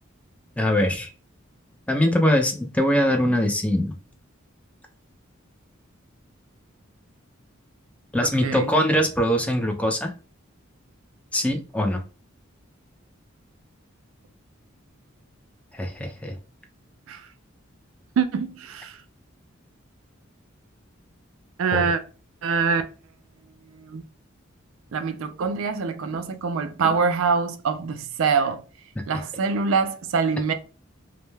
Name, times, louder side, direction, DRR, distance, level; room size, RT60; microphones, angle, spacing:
voice 1, 0.6-1.1 1.9-4.0 8.1-10.1 11.3-12.0 15.7-16.4 21.7-21.9, equal, 5° left, 0.3 m, -22 dB
voice 2, 18.2-18.9 21.6-22.0 22.4-22.8 23.8-24.0 24.9-28.6 29.1-30.5, right 5 dB, 70° right, 0.4 m, -24 dB
2.2 x 2.1 x 3.0 m
head